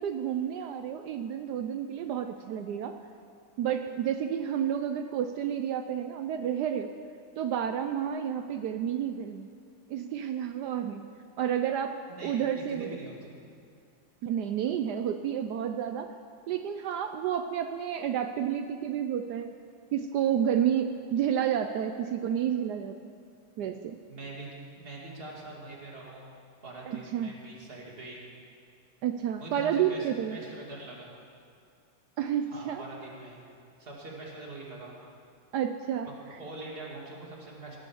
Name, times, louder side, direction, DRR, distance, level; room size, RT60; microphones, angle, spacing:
voice 1, 0.0-3.0 3.6-6.9 7.4-9.5 9.9-11.0 11.4-12.0 12.2-13.0 14.2-16.1 16.5-19.5 19.9-23.0 23.6-24.0 26.9-27.4 29.0-30.4 32.2-32.8 35.5-36.1, right 9 dB, 75° right, 7 dB, 1.0 m, -30 dB
voice 2, 12.1-13.4 24.1-24.5 24.8-26.3 26.6-28.2 29.4-31.1 32.5-33.4 33.8-34.9 36.0-37.8, right 2 dB, 30° right, -3 dB, 2.4 m, -43 dB
18.0 x 6.3 x 7.1 m, 2.4 s
omnidirectional pair, 2.2 m